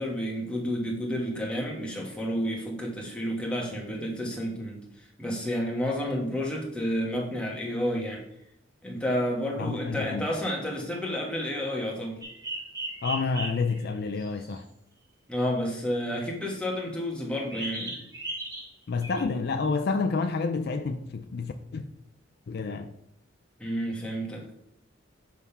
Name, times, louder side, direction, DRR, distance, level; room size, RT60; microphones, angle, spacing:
voice 1, 0.0-8.2 8.8-12.2 15.3-18.0 23.6-24.4, equal, 5° left, 1.2 m, -30 dB
voice 2, 9.6-10.3 13.0-14.6 18.9-21.8 22.5-22.9, left 4 dB, 50° left, 0.4 m, -29 dB
sound 1, 12.2-14.6 17.5-18.7 19.0-19.2, right 2 dB, 20° right, 1.1 m, -37 dB
6.4 x 3.5 x 5.5 m
head